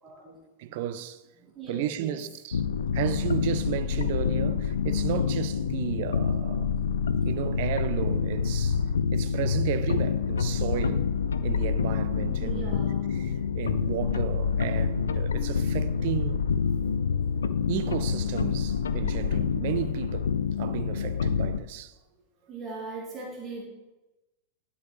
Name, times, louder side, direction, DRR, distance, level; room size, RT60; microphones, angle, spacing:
voice 1, 0.0-0.4 0.7-0.8 1.4-2.2 12.4-13.0 13.7-13.8 22.4-23.6, right 3 dB, 25° right, 2.1 m, -40 dB
voice 2, 0.6-1.2 1.7-2.6 2.9-6.7 7.2-8.8 9.1-11.1 11.4-12.8 13.1-16.4 17.7-20.3 20.6-21.9, right 11 dB, 50° right, 0.6 m, -33 dB
sound 1, 2.5-21.6, left 6 dB, 70° left, 0.4 m, -27 dB
10.5 x 7.0 x 3.4 m
figure-of-eight pair, 90°, 0 cm